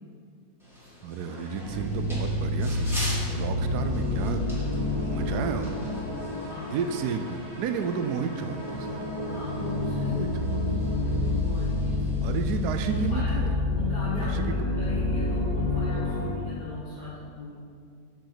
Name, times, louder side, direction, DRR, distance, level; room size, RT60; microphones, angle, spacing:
sound 1, 0.6-13.1, equal, ahead, 1.8 m, -44 dB
voice 1, 1.0-4.5 5.0-5.8 6.7-9.1 10.1-10.5 12.2-13.5 14.2-14.5, right 6 dB, 85° right, 7 dB, 1.1 m, -32 dB
sound 2, 1.6-16.3, left 2 dB, 30° right, 1.3 m, -29 dB
voice 2, 5.1-5.4 6.4-6.8 9.2-12.4 12.8-17.5, left 2 dB, 35° left, -9 dB, 1.1 m, -39 dB
6.9 x 6.1 x 5.0 m, 2.3 s
omnidirectional pair, 1.6 m